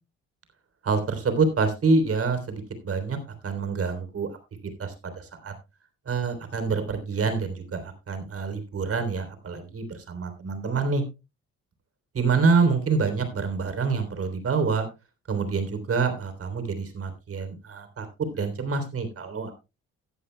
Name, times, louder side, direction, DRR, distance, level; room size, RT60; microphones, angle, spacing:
voice 1, 0.8-3.2 3.4-4.3 4.8-5.5 6.1-11.0 12.1-14.9 15.3-18.1 18.3-19.5, right 4 dB, 50° right, 8 dB, 3.4 m, -26 dB
16.0 x 11.5 x 2.2 m, 0.27 s
cardioid pair, 90°, 30 cm